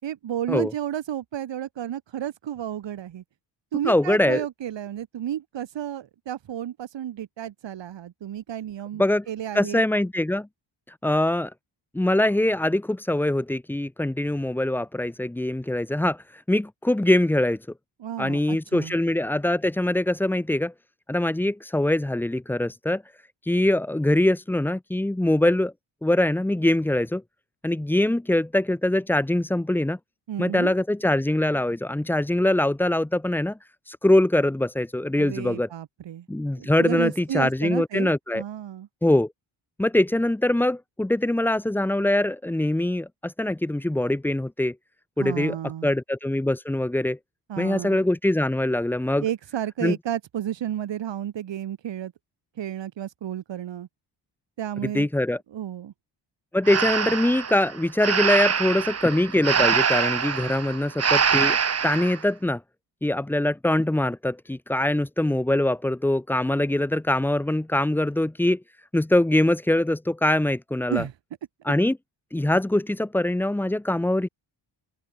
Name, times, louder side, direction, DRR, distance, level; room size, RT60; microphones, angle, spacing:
voice 1, 0.0-3.2 3.7-9.8 18.0-19.0 30.3-30.7 35.2-36.3 36.6-38.9 45.2-45.9 47.5-48.0 49.2-52.1 52.6-53.9 54.6-55.1 55.5-55.9 70.9-71.1, right 11 dB, 75° right, 3.9 m, -32 dB
voice 2, 3.8-4.4 9.0-9.2 9.5-10.5 11.0-11.5 11.9-17.6 18.2-20.7 21.1-23.0 23.4-25.7 26.0-27.2 27.6-30.0 30.4-33.6 33.9-35.7 36.3-38.4 39.0-39.3 39.8-44.7 45.2-45.6 45.8-47.2 47.6-49.2 49.8-49.9 54.9-55.4 56.5-61.6 61.8-62.6 63.0-68.6 68.9-71.0 71.6-72.0 72.3-74.3, left 1 dB, 5° left, 0.6 m, -23 dB
Breathing, 56.7-62.2, right 6 dB, 35° right, 1.8 m, -24 dB
open air
wide cardioid pair, 175°, 44 cm